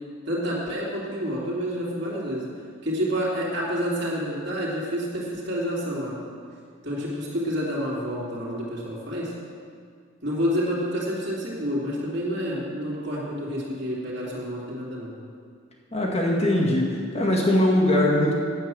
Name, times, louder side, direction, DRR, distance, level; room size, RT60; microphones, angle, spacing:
voice 1, 0.3-2.5 2.8-6.1 6.8-9.3 10.2-15.1, equal, 55° right, -6 dB, 2.9 m, -28 dB
voice 2, 15.9-18.3, left 1 dB, 30° left, -2 dB, 1.9 m, -21 dB
9.8 x 8.0 x 7.6 m, 2.2 s
head